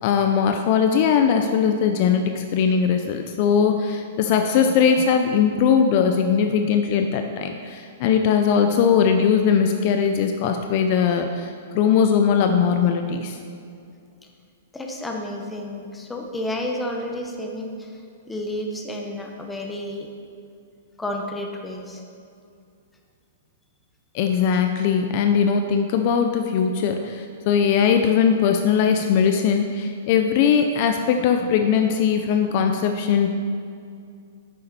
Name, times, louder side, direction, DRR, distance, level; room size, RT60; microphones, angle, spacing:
voice 1, 0.0-13.4 24.1-33.3, left 7 dB, 45° left, 5 dB, 0.5 m, -20 dB
voice 2, 14.7-20.1 21.0-22.0, left 1 dB, 5° left, 1 dB, 0.9 m, -31 dB
9.6 x 6.8 x 4.2 m, 2.4 s
hypercardioid pair, 155°, 0 cm